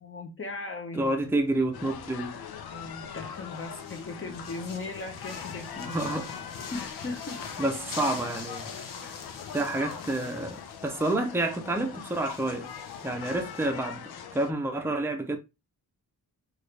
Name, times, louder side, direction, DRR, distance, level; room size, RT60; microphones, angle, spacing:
voice 1, 0.0-1.3 2.7-6.4 6.7-7.4, left 3 dB, 35° left, 0.9 m, -38 dB
voice 2, 0.9-2.4 5.8-6.3 7.6-8.6 9.5-12.7 13.0-14.0 14.3-15.4, right 2 dB, 5° right, 0.6 m, -29 dB
sound 1, 1.0-13.8, left 5 dB, 60° left, 1.0 m, -45 dB
sound 2, 1.7-14.5, left 7 dB, 80° left, 0.7 m, -41 dB
6.2 x 2.5 x 3.3 m
wide cardioid pair, 175°, 37 cm